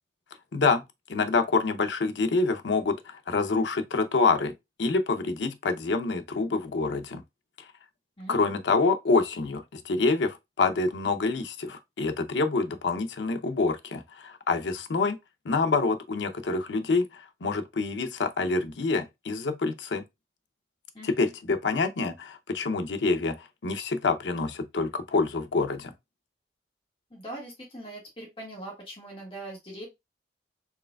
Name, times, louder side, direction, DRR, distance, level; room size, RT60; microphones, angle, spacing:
voice 1, 0.5-0.8 1.1-4.5 4.8-7.2 8.3-15.2 15.4-20.0 21.0-25.9, left 3 dB, 85° left, 0.6 m, -26 dB
voice 2, 8.2-8.5 20.9-21.3 27.1-29.9, right 1 dB, 30° left, 1.5 m, -41 dB
4.7 x 3.3 x 2.2 m
head